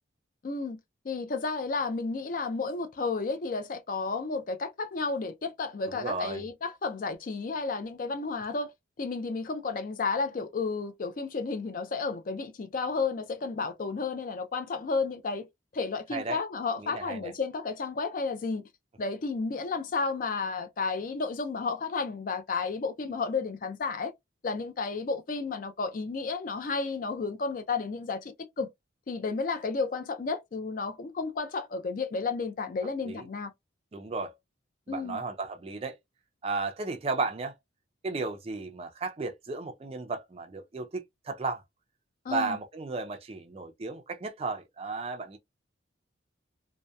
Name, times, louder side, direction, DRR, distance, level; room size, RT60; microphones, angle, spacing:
voice 1, 0.4-0.8 1.0-8.7 9.0-15.5 15.7-18.6 19.0-24.1 24.4-28.7 29.1-33.5 34.9-35.2 42.2-42.6, left 4 dB, 45° left, 0.4 m, -32 dB
voice 2, 5.9-6.4 16.1-16.4 16.8-17.3 33.0-33.3 33.9-34.3 34.9-36.0 36.4-37.5 38.0-41.6 42.3-45.4, right 3 dB, 30° right, 0.4 m, -34 dB
2.7 x 2.1 x 2.2 m
head